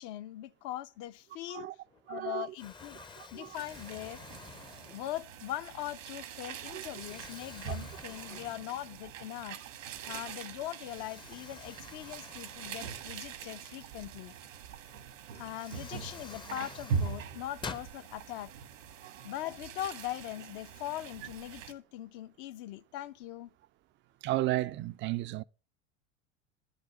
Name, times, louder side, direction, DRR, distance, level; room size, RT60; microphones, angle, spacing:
voice 1, 0.0-1.7 2.1-3.0 3.3-4.2 4.9-9.6 10.0-14.3 15.3-18.5 19.2-23.5, left 14 dB, 55° left, 0.7 m, -41 dB
Explosion, 1.9-2.2 2.6-5.4 6.0-6.2 6.9-9.1 9.5-9.6 10.8-13.5 14.9-15.0 15.4-17.9, left 4 dB, 15° left, 0.6 m, -49 dB
voice 2, 2.1-2.5 3.0-3.6 6.7-6.8 8.3-8.4 10.0-10.2 19.0-19.3 24.2-25.4, right 16 dB, 30° right, 0.4 m, -34 dB
sound 1, 3.5-21.7, right 6 dB, 80° right, 1.5 m, -42 dB
10.5 x 5.2 x 6.2 m
hypercardioid pair, 90°, 38 cm